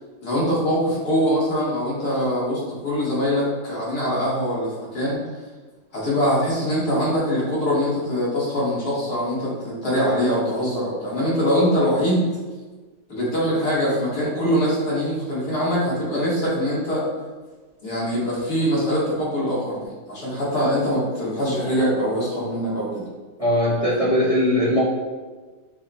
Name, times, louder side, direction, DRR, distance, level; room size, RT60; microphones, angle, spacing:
voice 1, 0.2-5.2 5.9-12.3 13.1-17.1 17.8-23.1, equal, 65° left, -6 dB, 1.9 m, -23 dB
voice 2, 23.4-24.8, left 1 dB, 30° left, -8 dB, 0.7 m, -20 dB
5.7 x 2.1 x 3.9 m, 1.3 s
omnidirectional pair, 1.9 m